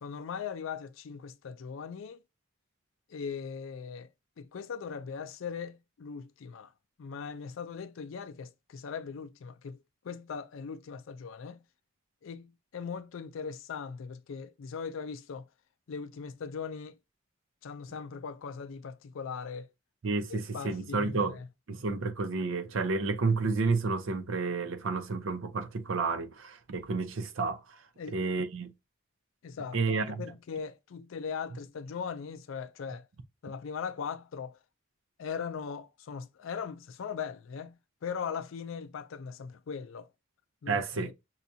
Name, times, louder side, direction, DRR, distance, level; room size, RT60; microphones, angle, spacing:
voice 1, 0.0-2.2 3.1-4.1 4.4-6.7 7.0-9.8 10.0-11.6 12.2-15.5 15.9-17.0 17.6-19.7 20.3-21.5 28.0-28.2 29.4-33.0 33.4-34.6 35.2-40.1 40.6-41.1, left 6 dB, 75° left, 0.4 m, -39 dB
voice 2, 20.0-21.4 21.7-27.8 28.1-28.7 29.7-30.2 40.7-41.1, right 4 dB, 75° right, 0.6 m, -31 dB
5.7 x 2.3 x 2.7 m
head